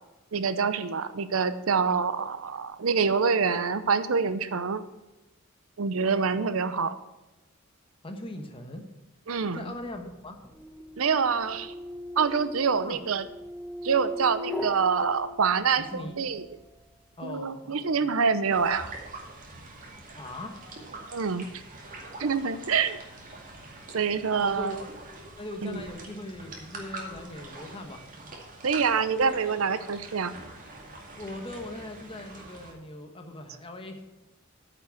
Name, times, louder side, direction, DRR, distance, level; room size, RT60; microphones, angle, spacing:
voice 1, 0.3-4.8 5.8-7.0 9.3-9.6 11.0-11.7 12.2-13.3 13.8-16.5 17.2-18.9 21.1-21.5 22.2-23.0 23.9-24.8 25.6-25.9 28.6-30.3, right 5 dB, 90° right, 13 dB, 0.7 m, -26 dB
voice 2, 8.0-8.9 9.5-10.4 12.8-13.0 15.8-16.2 17.2-18.1 20.1-20.6 24.4-24.9 25.4-28.1 31.1-34.1, left 1 dB, 25° left, 5 dB, 1.3 m, -40 dB
sound 1, 9.8-16.1, left 1 dB, ahead, 1.1 m, -39 dB
sound 2, 18.5-32.7, right 2 dB, 40° right, 2.2 m, -44 dB
9.3 x 6.0 x 7.7 m, 1.0 s
head